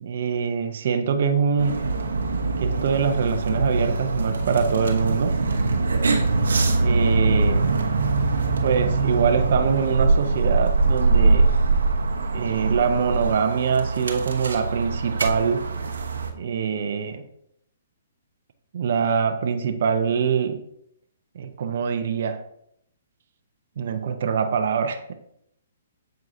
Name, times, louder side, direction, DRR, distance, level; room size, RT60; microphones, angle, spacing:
voice 1, 0.0-1.9 2.6-5.4 6.8-7.6 8.6-11.5 12.3-15.6 16.3-17.2 18.7-20.6 21.4-22.4 23.8-25.1, right 6 dB, 60° right, 7 dB, 0.6 m, -24 dB
sound 1, 1.6-16.3, right 3 dB, 80° right, 0.9 m, -23 dB
7.7 x 4.6 x 2.6 m, 0.72 s
hypercardioid pair, 135°, 0 cm